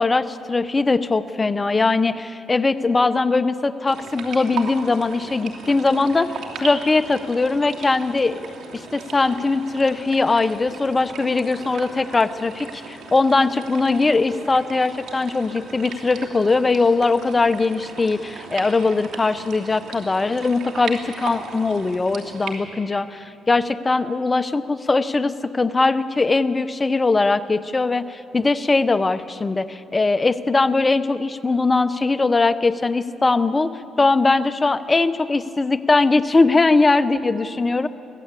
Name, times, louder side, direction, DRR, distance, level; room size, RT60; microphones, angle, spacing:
voice 1, 0.0-8.4 8.7-33.7 34.0-37.9, left 3 dB, 25° left, 12 dB, 0.8 m, -20 dB
sound 1, 3.9-22.6, right 5 dB, 75° right, 2.9 m, -37 dB
23.5 x 15.5 x 8.3 m, 2.7 s
cardioid pair, 90°, 0 cm